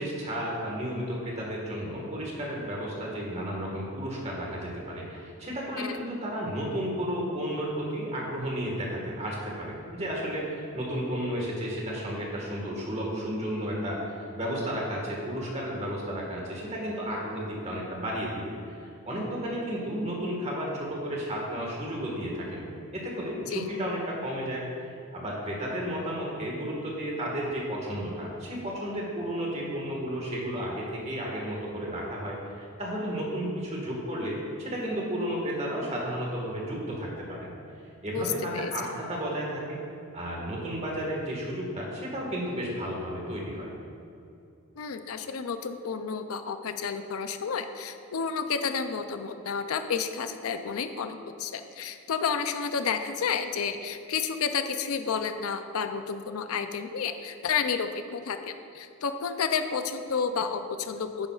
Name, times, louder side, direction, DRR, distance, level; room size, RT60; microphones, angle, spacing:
voice 1, 0.0-18.4 18.7-22.6 22.9-37.5 38.0-39.8 40.1-43.7, equal, 30° right, -2 dB, 1.6 m, -33 dB
voice 2, 38.1-38.7 44.8-61.3, left 6 dB, 80° left, 9 dB, 0.5 m, -31 dB
10.5 x 8.9 x 2.4 m, 2.6 s
head